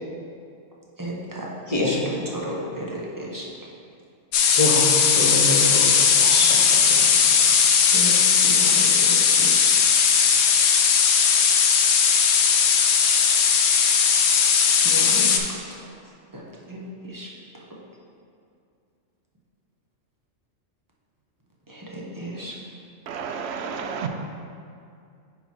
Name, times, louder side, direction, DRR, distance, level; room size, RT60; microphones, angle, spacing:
voice 1, 1.0-2.0 2.3-3.4 7.9-8.2 8.4-9.7 14.8-15.8 16.3-16.4 16.7-17.3 21.7-22.5, right 1 dB, 20° right, -4 dB, 0.7 m, -34 dB
voice 2, 1.7-2.1 4.5-7.3, left 1 dB, 35° left, -3 dB, 0.8 m, -26 dB
sound 1, 4.3-15.4, left 6 dB, 65° left, 0.8 m, -18 dB
voice 3, 23.1-24.1, right 6 dB, 65° right, 5 dB, 0.8 m, -31 dB
9.8 x 4.0 x 3.0 m, 2.4 s
omnidirectional pair, 1.3 m